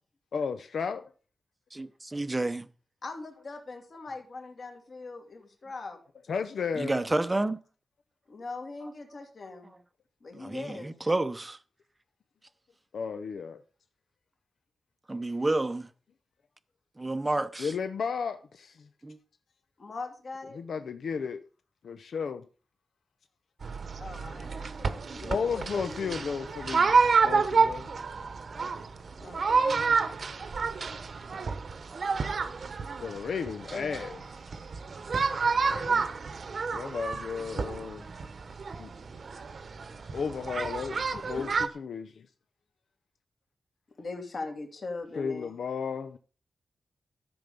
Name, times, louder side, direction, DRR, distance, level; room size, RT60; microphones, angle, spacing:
voice 1, 0.3-1.0 6.3-7.0 12.9-13.6 17.6-18.9 20.5-21.4 21.8-22.5 25.3-27.9 33.0-34.4 36.7-38.0 38.8-38.9 40.1-42.3 45.2-46.2, left 6 dB, 70° left, 0.8 m, -34 dB
voice 2, 1.7-2.7 6.8-7.6 10.4-11.6 15.1-15.9 17.0-17.7 19.0-19.2, right 2 dB, 15° right, 0.8 m, -29 dB
voice 3, 3.0-6.0 8.3-9.7 10.2-10.9 19.8-20.6 24.0-26.2 29.2-29.5 29.8-30.1 33.7-33.9 35.7-36.4 41.1-41.6 44.0-45.6, left 3 dB, 45° left, 2.8 m, -41 dB
sound 1, 23.6-41.7, right 5 dB, 50° right, 1.0 m, -29 dB
14.0 x 7.1 x 5.4 m
wide cardioid pair, 165°, 0 cm